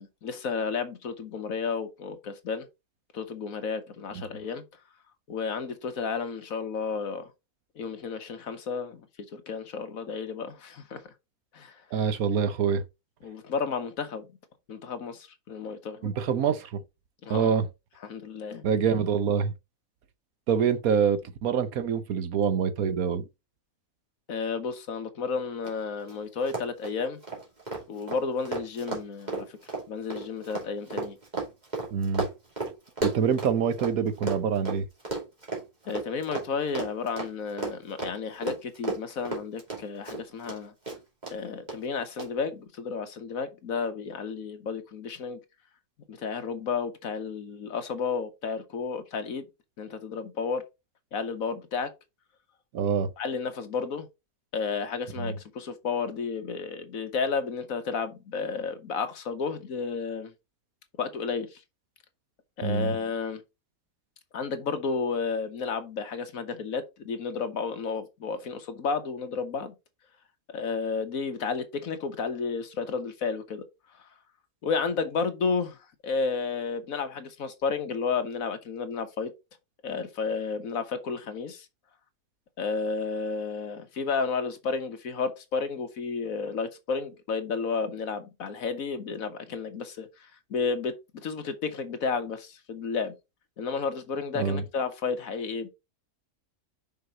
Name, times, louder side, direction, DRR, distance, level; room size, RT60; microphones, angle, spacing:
voice 1, 0.0-2.7 3.1-4.6 5.3-7.3 7.7-9.1 9.3-11.1 11.5-11.8 13.2-14.3 14.7-16.1 17.2-17.5 18.0-18.6 24.3-27.2 27.9-29.6 29.9-31.2 35.9-40.7 41.3-45.4 46.1-49.5 49.8-50.6 51.1-51.9 53.2-54.1 54.5-60.3 61.0-61.6 62.6-63.4 64.3-69.7 70.5-73.6 74.6-75.8 76.0-79.3 79.8-81.7 82.6-93.1 93.6-95.7, left 5 dB, 70° left, 1.5 m, -32 dB
voice 2, 11.9-12.8 16.0-16.8 17.3-17.7 18.6-19.5 20.5-23.2 31.9-32.3 33.0-34.8 52.7-53.1 55.2-55.3 62.6-63.0 94.3-94.6, right 7 dB, 75° right, 1.3 m, -25 dB
Run, 25.6-25.7 26.0-26.1 26.4-33.9 34.2-40.6 40.8-41.3 41.7-41.8 42.2-42.3, right 3 dB, 30° right, 2.9 m, -33 dB
5.7 x 5.5 x 3.9 m
omnidirectional pair, 1.5 m